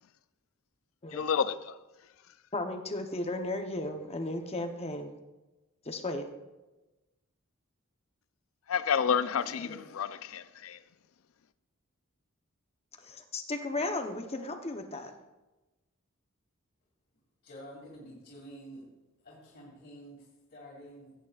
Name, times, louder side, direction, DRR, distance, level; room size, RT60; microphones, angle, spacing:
voice 1, 1.1-1.8 8.7-10.8, left 7 dB, 70° left, 0.4 m, -30 dB
voice 2, 2.5-5.1 5.8-6.3 13.0-15.1, left 2 dB, 30° left, 0.8 m, -35 dB
voice 3, 9.4-9.8 17.4-18.9 19.2-21.1, equal, 50° left, 2.7 m, -49 dB
16.5 x 9.1 x 2.4 m
head